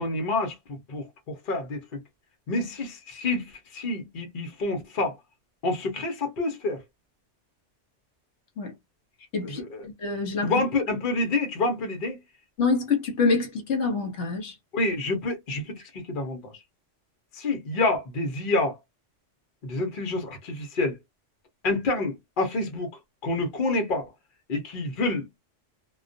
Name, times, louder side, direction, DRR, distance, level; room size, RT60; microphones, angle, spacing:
voice 1, 0.0-2.0 2.5-5.2 5.6-6.8 9.4-9.8 10.4-12.2 14.7-16.6 17.3-18.8 19.6-21.0 21.6-22.9 23.2-24.1 24.5-25.3, left 2 dB, 50° left, 0.9 m, -28 dB
voice 2, 10.0-10.5 12.6-14.5, left 4 dB, 70° left, 1.0 m, -26 dB
2.3 x 2.2 x 2.5 m
omnidirectional pair, 1.2 m